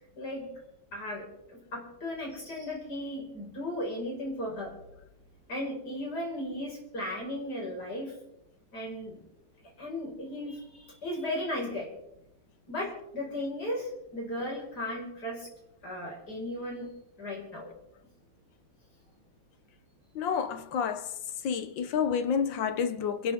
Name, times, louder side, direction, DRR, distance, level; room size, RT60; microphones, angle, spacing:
voice 1, 0.2-0.5 0.9-1.3 1.5-4.7 5.5-8.1 8.7-9.2 9.8-11.9 12.7-15.5 15.8-16.9 17.2-17.7, left 1 dB, 45° left, 5.9 m, -36 dB
voice 2, 20.2-21.0 21.4-23.3, left 7 dB, 65° left, 1.6 m, -29 dB
28.0 x 12.0 x 3.7 m
omnidirectional pair, 2.4 m